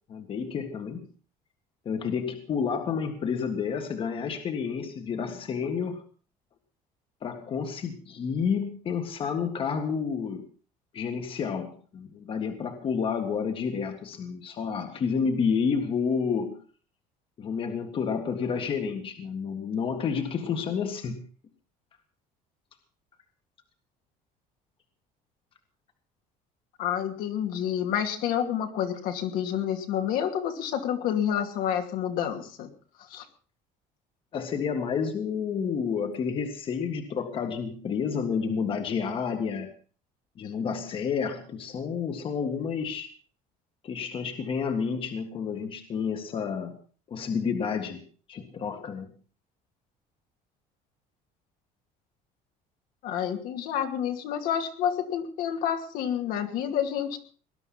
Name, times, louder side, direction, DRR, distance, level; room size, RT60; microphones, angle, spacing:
voice 1, 0.1-1.1 1.9-6.0 7.2-10.5 10.9-16.6 17.4-21.3 34.3-39.7 40.4-43.1 43.8-46.8 47.1-48.0 48.3-49.1, left 6 dB, 35° left, 6 dB, 1.8 m, -30 dB
voice 2, 26.8-32.7 33.1-33.2 53.0-57.2, left 9 dB, 70° left, 5 dB, 2.7 m, -29 dB
20.0 x 11.0 x 5.7 m, 0.40 s
cardioid pair, 150°, 15 cm